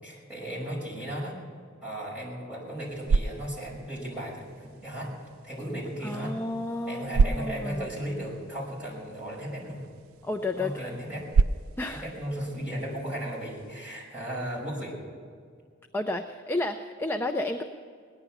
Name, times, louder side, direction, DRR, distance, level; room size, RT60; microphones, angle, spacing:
voice 1, 0.0-1.4 1.8-5.1 5.4-6.4 6.9-9.8 10.6-11.4 11.8-14.9, equal, 5° right, -6 dB, 5.4 m, -35 dB
sound 1, 2.7-13.8, right 4 dB, 75° right, 0.3 m, -32 dB
voice 2, 6.0-7.9 10.2-11.0 11.8-12.1 15.9-17.6, left 2 dB, 10° left, 5 dB, 0.5 m, -31 dB
18.5 x 11.0 x 7.0 m, 2.1 s
head